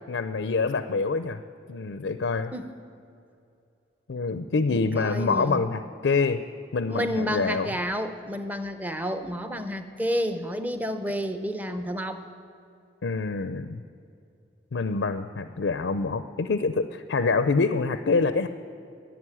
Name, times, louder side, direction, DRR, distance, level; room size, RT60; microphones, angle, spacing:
voice 1, 0.1-1.4 1.7-2.5 4.1-6.4 6.7-7.8 13.0-13.8 14.7-18.5, left 4 dB, 80° left, 10 dB, 0.5 m, -26 dB
voice 2, 4.7-5.6 6.9-12.2, equal, 10° right, 8 dB, 0.6 m, -30 dB
11.0 x 9.5 x 9.9 m, 2.6 s
head